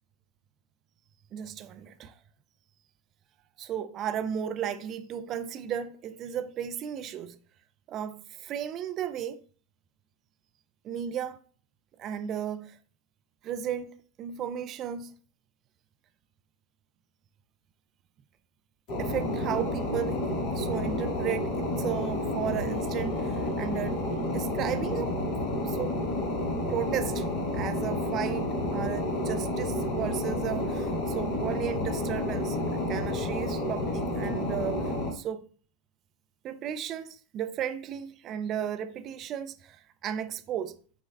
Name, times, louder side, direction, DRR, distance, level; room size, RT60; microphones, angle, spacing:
voice 1, 1.3-2.1 3.6-7.4 7.9-9.4 10.8-11.4 12.0-12.8 13.4-15.1 19.0-25.1 25.6-26.0 26.7-27.3 27.5-35.5 36.4-40.7, right 9 dB, 35° right, 0.3 m, -34 dB
sound 1, 18.9-35.1, left 1 dB, 40° left, 0.8 m, -30 dB
6.1 x 2.1 x 2.2 m
figure-of-eight pair, 90°, 0 cm